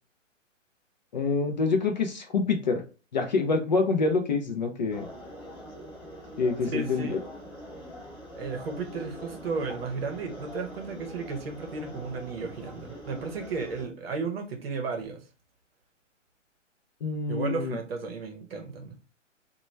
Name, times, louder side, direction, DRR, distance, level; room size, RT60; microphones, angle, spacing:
voice 1, 1.1-2.8 3.1-5.1 6.4-7.2 17.0-17.8, left 4 dB, 40° left, 0.4 m, -26 dB
sound 1, 4.9-13.8, equal, 15° left, 0.9 m, -43 dB
voice 2, 6.7-7.2 8.4-15.2 17.3-19.0, right 4 dB, 50° right, 0.8 m, -34 dB
2.9 x 2.2 x 3.1 m
figure-of-eight pair, 130°, 38 cm